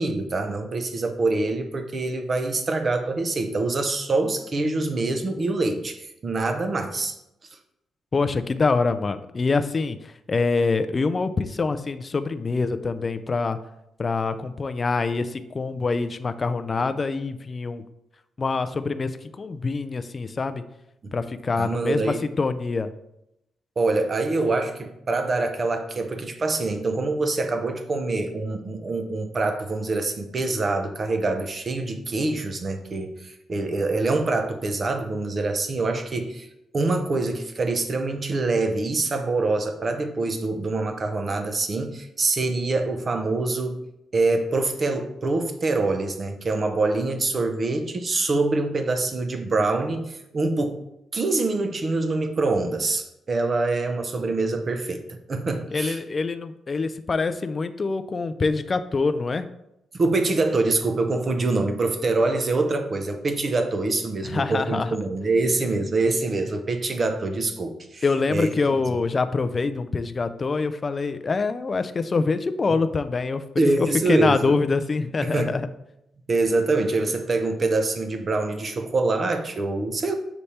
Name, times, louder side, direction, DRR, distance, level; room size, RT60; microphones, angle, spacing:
voice 1, 0.0-7.2 21.0-21.1 21.6-22.2 23.8-36.5 36.7-43.8 44.1-50.8 51.1-56.0 59.9-68.0 68.3-68.5 73.6-74.6 75.2-75.5 76.3-80.1, right 3 dB, 30° right, 7 dB, 0.6 m, -25 dB
voice 2, 8.1-13.6 14.0-17.8 18.4-20.6 21.1-22.9 55.7-59.5 64.2-65.0 68.0-75.7, left 4 dB, 25° left, 11 dB, 0.3 m, -25 dB
6.8 x 3.3 x 4.2 m, 0.83 s
cardioid pair, 165°, 0 cm